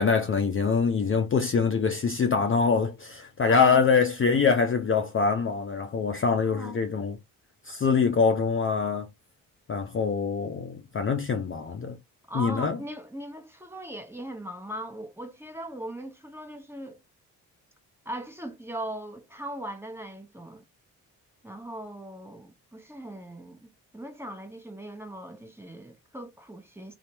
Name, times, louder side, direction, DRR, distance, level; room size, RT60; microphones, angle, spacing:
voice 1, 0.0-7.2 7.6-9.1 9.7-12.0 12.3-12.8, left 5 dB, 30° left, 0.5 m, -24 dB
voice 2, 3.5-3.9 6.4-6.8 12.3-17.0 18.0-20.6 21.4-27.0, right 1 dB, 5° right, 0.9 m, -39 dB
3.1 x 2.0 x 2.8 m
hypercardioid pair, 45°, 43 cm